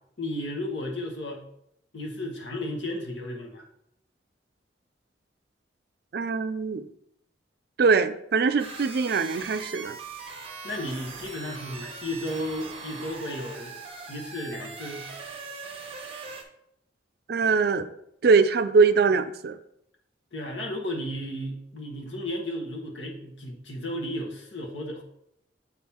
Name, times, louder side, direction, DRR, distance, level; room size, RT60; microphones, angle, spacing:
voice 1, 0.2-1.4 1.9-3.6 10.6-13.7 14.1-15.1 20.3-25.0, left 1 dB, 80° left, 0 dB, 1.4 m, -34 dB
voice 2, 6.1-6.9 7.8-9.9 17.3-17.9 18.2-19.6, right 5 dB, 60° right, 11 dB, 0.4 m, -22 dB
sound 1, 8.6-16.4, right 4 dB, 30° right, 0.9 m, -41 dB
7.8 x 3.7 x 4.4 m, 0.76 s
head